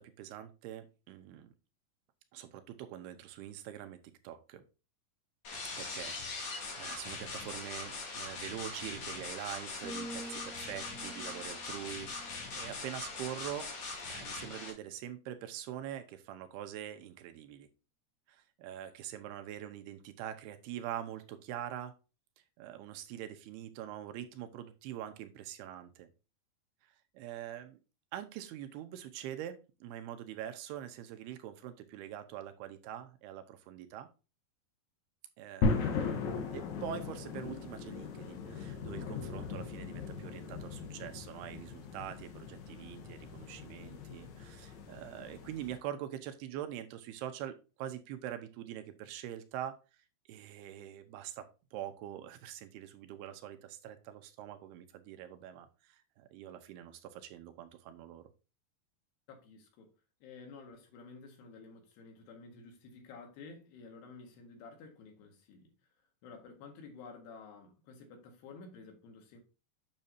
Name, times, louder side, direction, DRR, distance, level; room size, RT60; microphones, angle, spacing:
voice 1, 0.0-1.5 2.3-4.0 4.2-4.6 5.8-12.1 12.5-13.7 14.1-17.7 18.3-21.9 22.6-26.1 27.1-27.8 28.1-34.1 35.4-36.2 36.5-49.8 50.3-58.3, right 11 dB, 90° right, 2.8 m, -44 dB
sound 1, 5.4-14.7, left 4 dB, 45° left, 3.2 m, -41 dB
sound 2, 9.8-13.7 14.2-14.5, right 1 dB, 40° right, 1.3 m, -49 dB
sound 3, 35.6-45.8, left 4 dB, 65° left, 2.0 m, -38 dB
voice 2, 59.3-59.9 60.2-65.7 66.2-69.4, left 4 dB, 85° left, 3.8 m, -52 dB
8.8 x 6.5 x 2.7 m
omnidirectional pair, 4.6 m